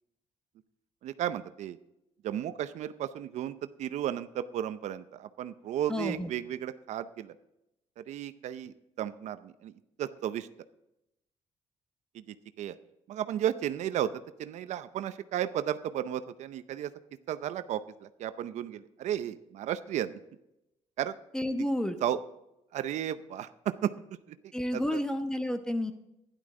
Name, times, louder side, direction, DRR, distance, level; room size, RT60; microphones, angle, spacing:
voice 1, 1.0-1.8 2.2-7.4 8.0-10.5 12.1-12.8 13.1-16.9 17.3-20.2 21.0-21.2 22.0-22.2 22.7-23.9 24.3-24.4 24.7-25.0, right 11 dB, 70° right, 13 dB, 0.6 m, -34 dB
voice 2, 5.9-6.3 21.3-22.0 24.5-25.9, left 1 dB, 5° left, 8 dB, 1.0 m, -30 dB
12.0 x 11.0 x 3.7 m, 0.87 s
cardioid pair, 120°, 12 cm